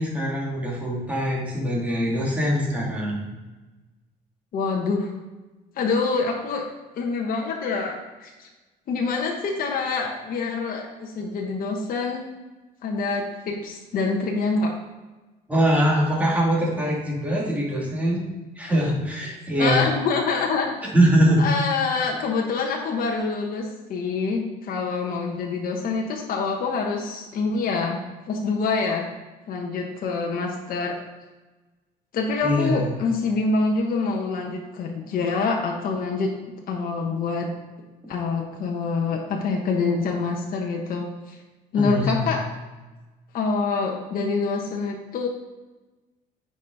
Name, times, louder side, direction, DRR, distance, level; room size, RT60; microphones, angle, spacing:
voice 1, 0.0-3.3 15.5-18.2 18.6-19.9 20.9-21.4 32.4-33.0 41.8-42.3, equal, 10° right, -4 dB, 2.7 m, -22 dB
voice 2, 4.5-5.1 5.7-6.6 7.0-8.5 8.9-12.3 12.8-14.7 19.2-19.3 19.6-20.7 21.4-28.0 28.3-29.0 29.5-31.0 32.1-36.3 36.7-37.5 38.1-41.4 41.7-42.4 43.3-45.3, left 4 dB, 60° left, 0 dB, 1.2 m, -26 dB
9.2 x 5.3 x 4.0 m, 1.2 s
cardioid pair, 110°, 17 cm